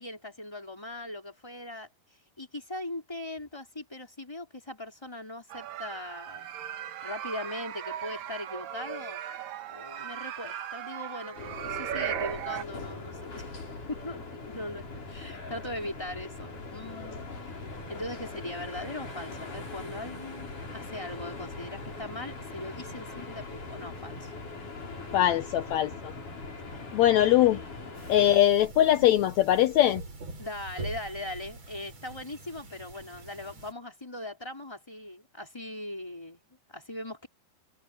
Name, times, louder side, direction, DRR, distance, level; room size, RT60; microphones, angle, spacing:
voice 1, 0.0-1.9 2.4-6.4 7.0-9.2 9.7-13.5 13.9-17.5 17.9-24.3 25.0-25.4 26.6-27.0 27.5-27.7 30.4-36.4 36.7-37.3, left 1 dB, 5° left, 4.2 m, -40 dB
sound 1, 5.5-12.6, right 10 dB, 70° right, 3.0 m, -37 dB
sound 2, 11.3-28.4, left 3 dB, 55° left, 7.7 m, -41 dB
voice 2, 25.1-26.1 26.9-27.6 28.1-30.0, left 12 dB, 75° left, 1.6 m, -22 dB
sound 3, 27.9-33.7, right 3 dB, 45° right, 6.5 m, -44 dB
omnidirectional pair, 4.3 m